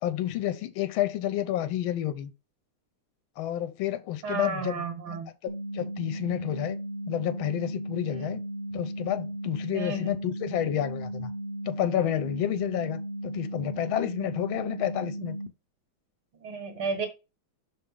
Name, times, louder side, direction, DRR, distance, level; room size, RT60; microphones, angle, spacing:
voice 1, 0.0-2.3 3.4-5.2 5.4-6.8 7.1-8.4 8.7-11.3 11.6-15.4, left 12 dB, 75° left, 1.5 m, -30 dB
voice 2, 4.2-5.3 9.7-10.1 16.4-17.1, right 4 dB, 75° right, 2.8 m, -32 dB
sound 1, 5.5-15.5, right 1 dB, 60° right, 0.6 m, -36 dB
5.7 x 4.9 x 3.8 m
omnidirectional pair, 2.3 m